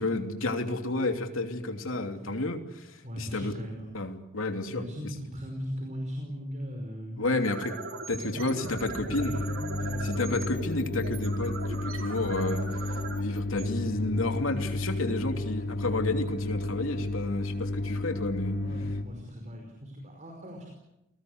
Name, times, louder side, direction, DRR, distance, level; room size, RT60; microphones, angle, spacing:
voice 1, 0.0-3.5 3.9-4.8 7.2-7.7 8.1-9.5 10.0-12.7 13.1-18.6, left 2 dB, 85° left, 5 dB, 3.0 m, -31 dB
voice 2, 3.0-3.9 4.7-7.3 8.1-10.4 18.6-20.7, equal, 40° right, 2 dB, 5.2 m, -39 dB
sound 1, 7.4-14.4, right 3 dB, 75° right, 4.7 m, -40 dB
sound 2, 9.1-19.0, left 2 dB, 55° left, 2.6 m, -32 dB
29.0 x 20.0 x 8.0 m, 0.90 s
head